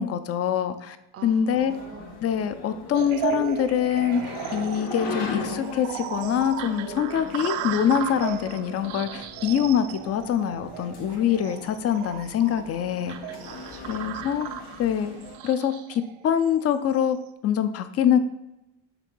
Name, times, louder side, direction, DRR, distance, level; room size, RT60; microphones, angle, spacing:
voice 1, 0.0-1.0 1.2-1.7 2.2-13.2 13.9-14.5 14.8-15.2 15.4-17.2 17.4-18.2, left 9 dB, 35° left, 11 dB, 0.4 m, -24 dB
voice 2, 1.1-2.2 13.3-14.3, right 7 dB, 30° right, 10 dB, 0.5 m, -46 dB
sound 1, 1.5-15.4, left 4 dB, 80° left, 1.6 m, -39 dB
sound 2, 2.9-17.2, right 11 dB, 75° right, 0.6 m, -36 dB
6.0 x 3.7 x 5.4 m, 0.93 s
cardioid pair, 135°, 47 cm